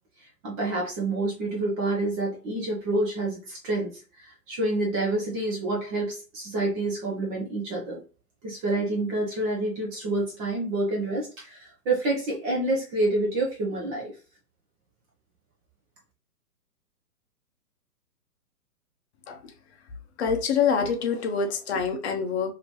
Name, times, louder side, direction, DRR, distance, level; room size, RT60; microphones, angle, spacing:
voice 1, 0.4-8.0 8.4-14.1, right 2 dB, 15° right, -2 dB, 0.6 m, -28 dB
voice 2, 20.2-22.5, left 6 dB, 45° left, 5 dB, 0.7 m, -25 dB
2.9 x 2.8 x 3.1 m, 0.34 s
figure-of-eight pair, 120°, 46 cm